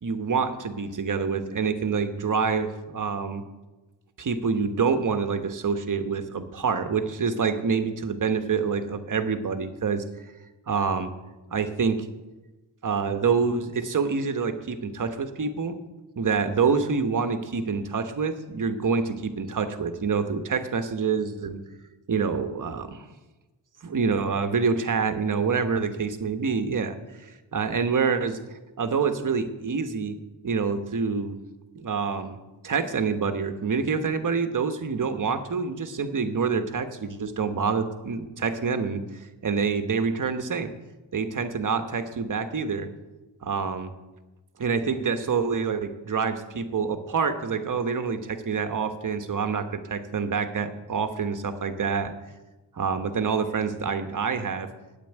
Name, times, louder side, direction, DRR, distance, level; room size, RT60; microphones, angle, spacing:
voice 1, 0.0-3.4 4.2-10.0 10.7-11.1 11.5-12.1 12.8-15.8 16.2-21.6 22.1-23.1 23.8-28.4 28.8-30.2 30.4-31.3 31.7-32.4 32.6-39.0 39.4-40.7 41.1-42.9 43.4-43.9 44.6-52.1 52.7-54.7, right 5 dB, 45° right, 8 dB, 1.2 m, -26 dB
9.1 x 8.5 x 9.1 m, 1.1 s
cardioid pair, 95°, 45 cm